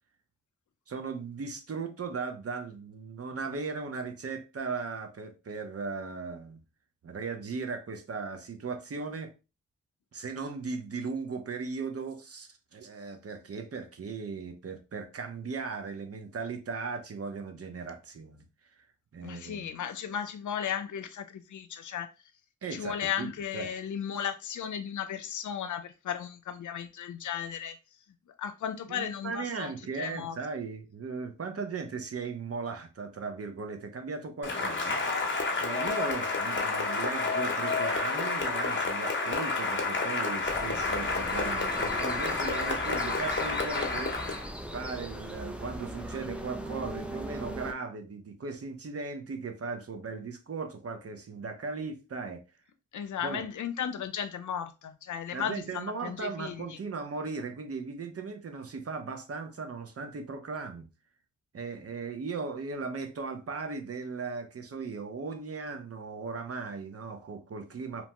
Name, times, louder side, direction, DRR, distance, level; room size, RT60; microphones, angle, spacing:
voice 1, 0.9-6.6 7.0-9.3 10.1-18.4 18.7-18.8 19.1-19.8 22.6-23.3 23.5-23.7 28.9-52.4 53.2-53.4 55.3-60.9 61.5-68.1, right 4 dB, 50° right, 0.7 m, -37 dB
voice 2, 19.2-22.1 22.7-27.8 28.4-30.4 52.9-56.8, left 8 dB, 70° left, 0.5 m, -35 dB
Cheering / Applause, 34.4-44.5, left 3 dB, 40° left, 0.8 m, -30 dB
sound 1, 40.4-47.7, right 1 dB, 5° right, 0.5 m, -39 dB
2.9 x 2.2 x 2.8 m
cardioid pair, 50°, 31 cm